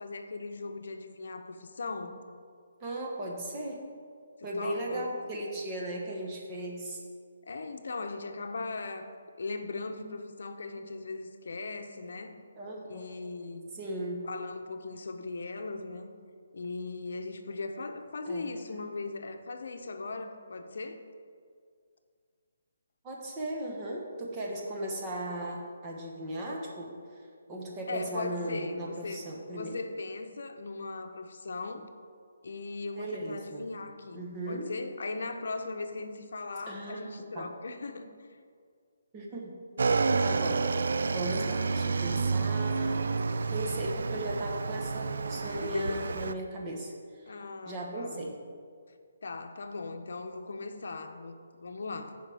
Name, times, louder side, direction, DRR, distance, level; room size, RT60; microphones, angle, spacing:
voice 1, 0.0-2.2 4.4-5.1 7.4-9.1 9.4-12.3 12.9-13.7 14.2-16.1 16.5-21.0 27.9-31.9 32.4-38.4 45.3-46.0 47.3-48.2 49.2-52.2, left 3 dB, 65° left, 6 dB, 0.8 m, -38 dB
voice 2, 2.8-3.8 4.4-7.0 12.6-13.2 13.7-14.2 18.3-18.5 23.0-27.0 27.5-29.8 33.0-33.7 34.1-34.7 36.7-37.5 39.1-39.5 39.9-48.3, right 1 dB, 15° right, -2 dB, 1.1 m, -37 dB
Motorcycle / Engine, 39.8-46.3, right 4 dB, 65° right, 0.3 m, -29 dB
14.5 x 5.0 x 3.5 m, 2.1 s
hypercardioid pair, 170°, 0 cm